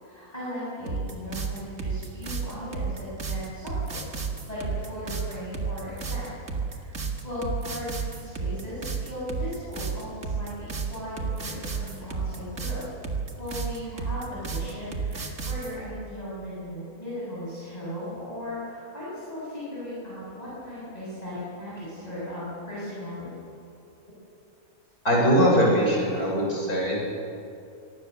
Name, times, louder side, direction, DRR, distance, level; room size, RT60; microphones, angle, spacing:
voice 1, 0.0-4.0 4.5-6.3 6.6-7.0 7.2-12.9 13.4-23.3, left 1 dB, 25° left, -9 dB, 7.3 m, -37 dB
sound 1, 0.9-15.7, right 5 dB, 55° right, 2.3 m, -32 dB
voice 2, 25.0-27.0, equal, 70° left, -2 dB, 6.6 m, -21 dB
25.0 x 19.0 x 6.8 m, 2.6 s
omnidirectional pair, 1.6 m